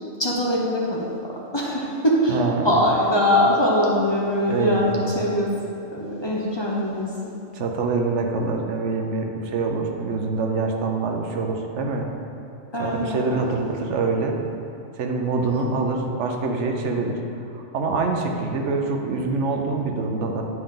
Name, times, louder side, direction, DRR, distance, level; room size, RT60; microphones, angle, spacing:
voice 1, 0.2-2.4 2.6-5.5 5.9-7.1 12.7-13.7, left 1 dB, 25° left, -4 dB, 0.8 m, -22 dB
voice 2, 2.3-2.7 4.5-5.2 7.5-12.1 12.8-14.4 15.0-17.2 17.5-20.4, right 3 dB, 85° right, 2 dB, 1.1 m, -25 dB
9.6 x 5.1 x 3.8 m, 2.7 s
omnidirectional pair, 1.2 m